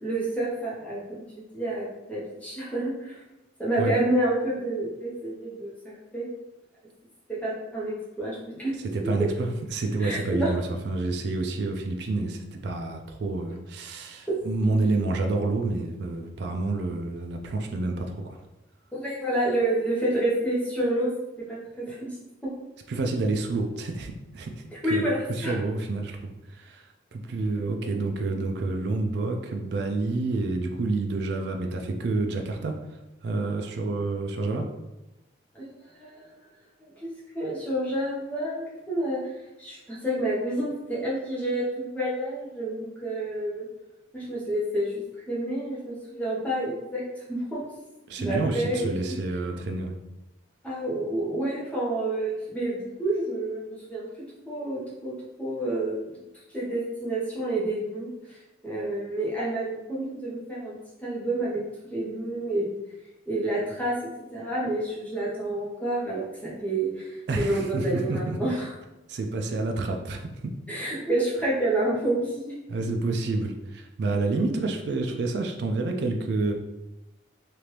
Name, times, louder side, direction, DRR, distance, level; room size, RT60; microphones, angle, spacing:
voice 1, 0.0-3.2 3.6-6.3 7.3-8.7 10.0-10.5 14.3-14.4 18.9-21.1 21.5-22.1 22.4-22.5 24.8-25.2 25.4-25.5 35.5-35.7 36.0-36.3 37.0-39.2 39.6-43.6 44.1-47.6 48.2-49.2 50.6-54.1 54.5-55.1 55.4-56.0 56.5-58.4 58.6-62.7 63.3-63.9 64.3-68.7 70.7-72.5, right 1 dB, 5° left, -7 dB, 0.9 m, -29 dB
voice 2, 8.9-18.4 22.9-32.8 33.2-34.7 48.1-50.0 67.3-68.5 69.1-70.5 72.7-76.5, right 3 dB, 55° right, 3 dB, 0.3 m, -29 dB
2.9 x 2.5 x 3.2 m, 0.99 s
head